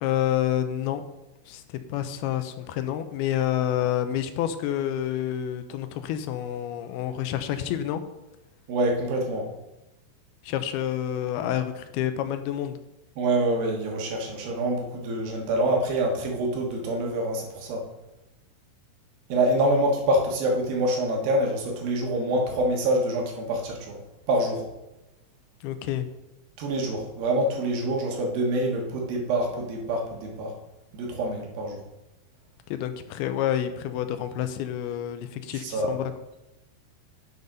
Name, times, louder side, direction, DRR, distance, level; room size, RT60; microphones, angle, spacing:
voice 1, 0.0-1.0 1.5-8.0 10.4-12.8 25.6-26.1 32.7-36.1, left 11 dB, 90° left, 10 dB, 2.6 m, -28 dB
voice 2, 8.7-9.5 13.2-17.8 19.3-24.0 24.3-24.6 26.6-30.5 30.9-31.8 35.5-35.9, right 1 dB, 70° right, 0 dB, 3.2 m, -26 dB
11.0 x 7.9 x 4.0 m, 0.97 s
omnidirectional pair, 4.5 m